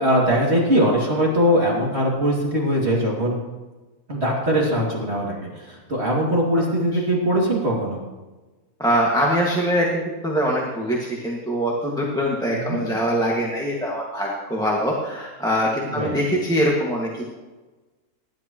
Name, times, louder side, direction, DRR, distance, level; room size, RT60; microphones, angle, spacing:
voice 1, 0.0-3.4 4.1-8.0 12.5-12.9 15.9-16.2, equal, 40° right, -3 dB, 2.8 m, -21 dB
voice 2, 8.8-17.2, equal, ahead, -3 dB, 1.8 m, -23 dB
19.0 x 11.5 x 3.1 m, 1.2 s
omnidirectional pair, 1.6 m